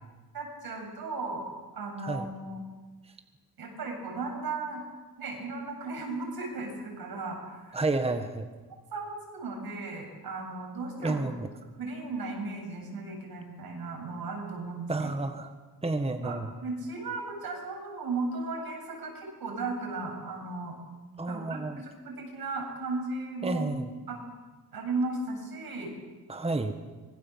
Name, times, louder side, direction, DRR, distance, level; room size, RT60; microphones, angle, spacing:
voice 1, 0.3-1.5 1.7-2.6 3.6-4.8 5.2-7.8 8.9-11.2 11.8-14.9 16.2-20.8 21.3-23.7 24.1-24.2 24.7-25.9, right 3 dB, 80° right, 2 dB, 7.6 m, -36 dB
voice 2, 7.7-8.5 11.0-11.5 14.9-15.5 15.8-16.5 21.2-21.8 23.4-23.9 26.3-26.7, right 2 dB, 15° right, 7 dB, 1.6 m, -30 dB
25.0 x 23.0 x 7.4 m, 1.3 s
wide cardioid pair, 115°, 36 cm